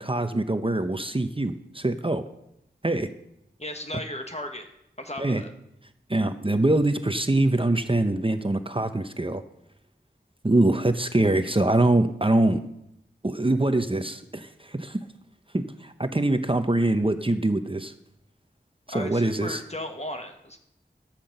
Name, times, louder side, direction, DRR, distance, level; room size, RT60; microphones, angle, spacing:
voice 1, 0.0-2.2 2.8-3.1 5.2-5.4 6.1-9.4 10.4-12.6 13.2-15.1 15.5-17.9 18.9-19.6, right 2 dB, 30° right, 9 dB, 0.7 m, -24 dB
voice 2, 3.6-4.7 5.0-5.5 18.9-20.6, left 1 dB, 35° left, 5 dB, 1.4 m, -35 dB
13.0 x 5.9 x 6.6 m, 0.80 s
wide cardioid pair, 40°, 19 cm